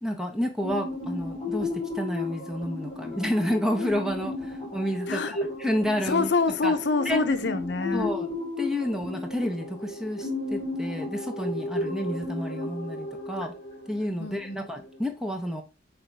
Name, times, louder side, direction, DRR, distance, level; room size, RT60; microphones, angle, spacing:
voice 1, 0.0-4.4 4.7-6.3 6.6-6.7 7.0-7.2 7.9-8.3 8.6-13.5 13.9-15.6, equal, 5° right, 1.2 m, -30 dB
sound 1, 0.6-15.0, left 2 dB, 20° left, 4.2 m, -34 dB
voice 2, 5.1-5.4 6.0-8.1 14.2-14.6, left 3 dB, 65° left, 0.8 m, -26 dB
8.8 x 3.1 x 5.5 m
head